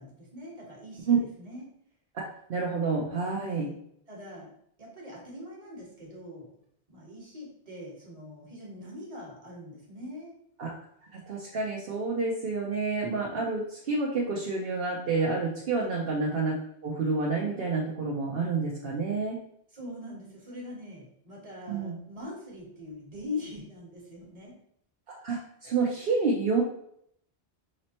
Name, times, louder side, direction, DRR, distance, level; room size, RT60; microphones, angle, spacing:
voice 1, 0.0-1.6 3.5-3.8 4.1-4.5 4.8-6.5 6.9-10.3 15.8-16.0 19.7-24.6, left 2 dB, 35° right, -2 dB, 1.3 m, -42 dB
voice 2, 2.5-3.7 10.6-10.7 11.1-19.4 21.7-21.9 25.2-26.6, right 4 dB, 60° right, -3 dB, 0.9 m, -29 dB
5.1 x 3.1 x 2.8 m, 0.71 s
omnidirectional pair, 1.1 m